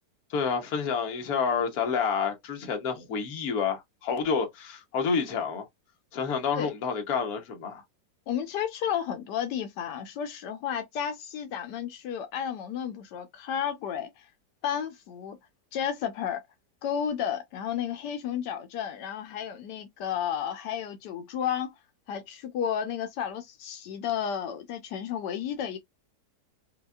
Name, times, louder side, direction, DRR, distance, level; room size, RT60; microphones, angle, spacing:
voice 1, 0.3-5.7 6.1-7.8, left 6 dB, 65° left, 1.4 m, -29 dB
voice 2, 8.3-14.3 14.6-15.4 15.7-16.4 16.8-21.7 22.1-25.8, left 8 dB, 85° left, 1.3 m, -32 dB
5.3 x 2.2 x 2.3 m
omnidirectional pair, 1.8 m